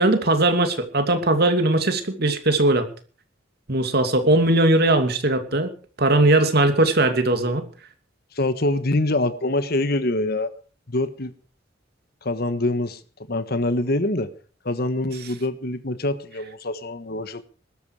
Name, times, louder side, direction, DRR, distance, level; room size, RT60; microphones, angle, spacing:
voice 1, 0.0-2.9 3.7-5.7 6.0-7.6, right 2 dB, 55° right, 2.7 m, -19 dB
voice 2, 8.3-10.5 10.9-11.3 12.2-13.0 13.3-14.3 14.6-17.4, left 2 dB, 55° left, 1.4 m, -24 dB
19.5 x 13.5 x 4.9 m
head